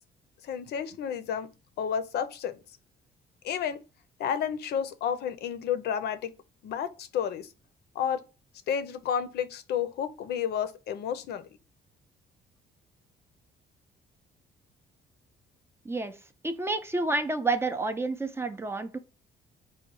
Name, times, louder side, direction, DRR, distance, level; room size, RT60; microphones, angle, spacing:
voice 1, 0.4-1.5 1.8-2.6 3.4-3.8 4.2-6.3 6.6-7.5 7.9-8.2 8.7-11.5, left 8 dB, 70° left, 0.6 m, -31 dB
voice 2, 15.8-16.2 16.4-19.0, right 3 dB, 15° right, 0.4 m, -29 dB
4.1 x 2.2 x 4.5 m
cardioid pair, 135°, 17 cm